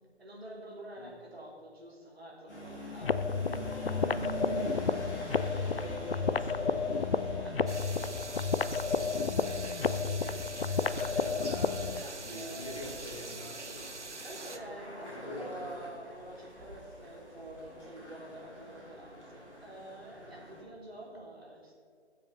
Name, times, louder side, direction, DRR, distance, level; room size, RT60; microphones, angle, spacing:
voice 1, 0.2-3.7 7.4-13.1 14.2-21.7, right 1 dB, 60° right, -2 dB, 3.2 m, -48 dB
sound 1, 2.5-20.6, right 1 dB, 10° left, 3.2 m, -46 dB
sound 2, 3.0-12.0, left 5 dB, 60° left, 0.5 m, -31 dB
voice 2, 3.3-5.0 5.3-7.0 12.0-13.9 15.1-15.7, left 1 dB, 30° left, 1 dB, 1.3 m, -45 dB
sound 3, 7.7-14.6, right 3 dB, 85° right, 1.1 m, -44 dB
16.5 x 7.4 x 3.9 m, 2.3 s
figure-of-eight pair, 155°, 34 cm